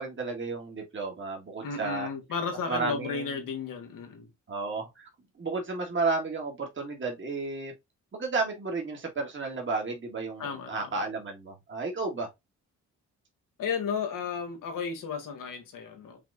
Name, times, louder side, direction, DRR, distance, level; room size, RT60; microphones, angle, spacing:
voice 1, 0.0-2.1 2.7-3.2 4.5-5.1 5.4-7.7 8.1-12.3, right 3 dB, 40° right, 1.7 m, -32 dB
voice 2, 1.6-4.3 10.4-10.9 13.6-16.2, left 6 dB, 85° left, 1.5 m, -33 dB
5.8 x 3.0 x 2.6 m
cardioid pair, 95°, 32 cm